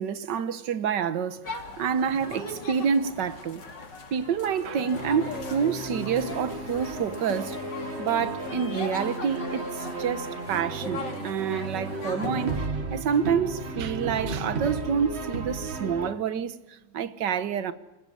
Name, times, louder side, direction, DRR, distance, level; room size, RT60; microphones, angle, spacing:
voice 1, 0.0-3.6 4.1-7.6 8.0-17.7, right 7 dB, 70° right, 1.7 m, -28 dB
sound 1, 1.4-12.7, left 3 dB, 65° left, 3.1 m, -39 dB
sound 2, 4.9-16.1, right 3 dB, 35° right, 1.7 m, -34 dB
26.0 x 15.0 x 9.9 m
omnidirectional pair, 2.1 m